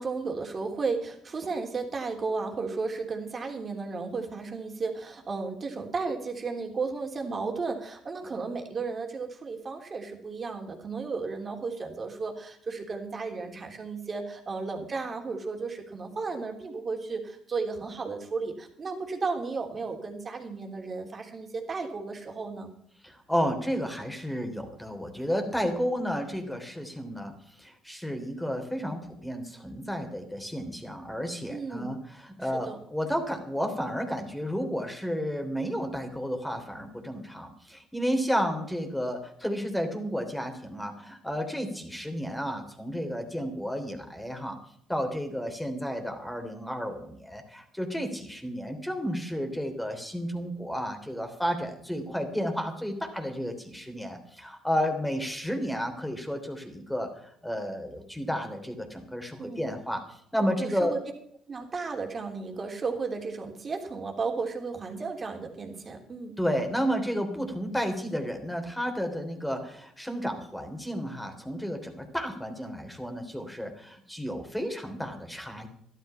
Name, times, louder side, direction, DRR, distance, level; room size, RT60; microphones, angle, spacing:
voice 1, 0.0-22.7 31.5-31.9 32.4-32.8 59.4-59.8 60.6-61.0 61.5-66.4, right 4 dB, 35° right, 3 dB, 3.3 m, -34 dB
voice 2, 23.0-27.3 27.6-44.6 44.9-60.0 60.3-60.9 66.4-75.7, equal, 5° left, 5 dB, 3.2 m, -32 dB
12.5 x 12.0 x 5.8 m, 0.69 s
supercardioid pair, 85°, 0 cm